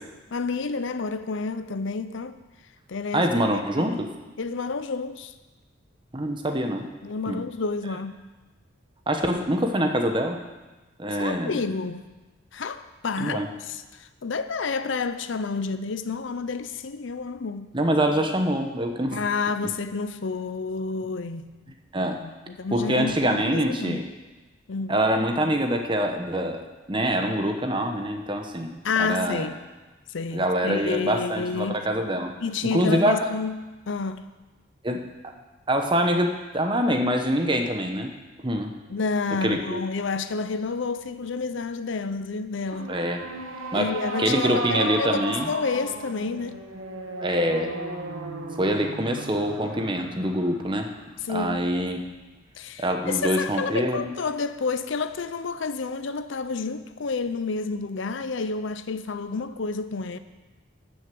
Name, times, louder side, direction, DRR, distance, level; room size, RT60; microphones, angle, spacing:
voice 1, 0.3-2.4 2.9-3.4 3.8-4.0 4.4-5.3 7.0-8.2 11.2-12.1 12.5-17.7 19.1-21.7 22.2-24.0 24.7-25.0 28.8-29.6 30.1-31.9 32.4-34.3 38.9-42.9 43.7-46.6 51.2-51.7 52.6-60.2, left 4 dB, 65° left, 0.6 m, -30 dB
voice 2, 3.1-4.1 6.1-6.9 7.3-7.4 9.1-10.4 11.0-11.6 13.2-13.5 17.7-19.2 21.9-22.2 22.7-24.1 24.9-26.6 26.9-29.5 30.3-32.3 32.7-33.2 34.8-35.0 35.7-38.1 38.4-38.7 39.4-39.8 42.9-43.3 43.7-43.9 44.2-45.5 47.2-47.7 48.6-50.9 51.3-52.0 52.8-54.1, equal, 25° right, 1.0 m, -25 dB
sound 1, 42.7-52.1, right 2 dB, 85° right, 1.8 m, -35 dB
12.5 x 6.5 x 7.7 m
head